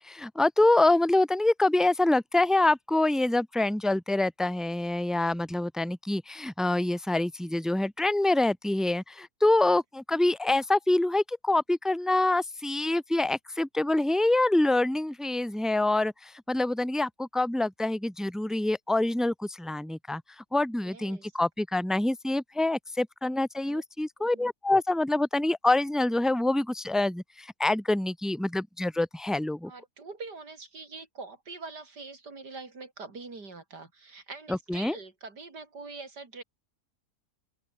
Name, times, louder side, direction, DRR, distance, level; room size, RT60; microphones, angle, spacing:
voice 1, 0.0-20.2 20.5-29.7 34.5-35.0, left 2 dB, ahead, 0.4 m, -26 dB
voice 2, 20.8-21.3 23.7-23.8 24.2-24.5 29.7-36.4, right 3 dB, 85° right, 4.4 m, -44 dB
open air
omnidirectional pair, 1.7 m